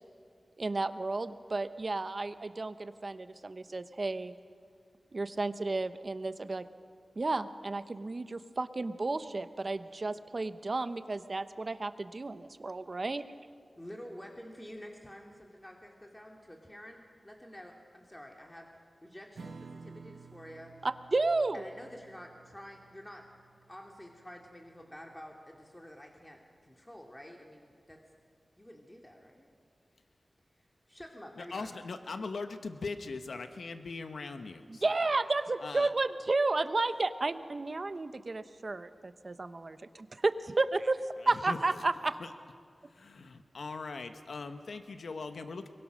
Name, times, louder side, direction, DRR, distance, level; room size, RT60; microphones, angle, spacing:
voice 1, 0.6-4.3 5.1-6.6 7.2-13.2 20.8-21.6 34.7-42.2, right 3 dB, 50° right, 11 dB, 1.0 m, -32 dB
voice 2, 13.8-20.8 21.5-23.3 23.7-28.1 28.6-29.5 30.5-31.7, equal, 15° left, 1 dB, 2.4 m, -49 dB
Strum, 19.3-26.2, right 4 dB, 85° right, 1.3 m, -53 dB
voice 3, 31.4-34.9 35.6-35.9 41.5-41.6 42.2-42.3 42.9-45.7, left 4 dB, 85° left, 8 dB, 1.2 m, -40 dB
23.0 x 20.5 x 6.4 m, 2.1 s
cardioid pair, 55°, 0 cm